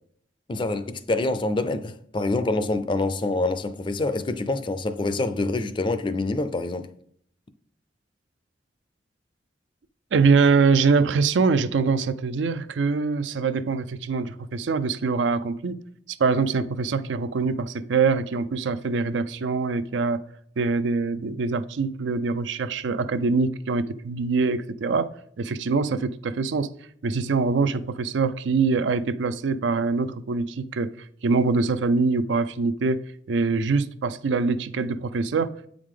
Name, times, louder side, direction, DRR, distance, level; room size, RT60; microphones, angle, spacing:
voice 1, 0.5-6.9, left 2 dB, 25° left, 0.4 m, -26 dB
voice 2, 10.1-15.8 16.1-20.2 20.6-25.1 25.4-26.7 27.0-30.9 31.2-35.5, right 4 dB, 80° right, 0.4 m, -24 dB
8.1 x 4.9 x 3.7 m
head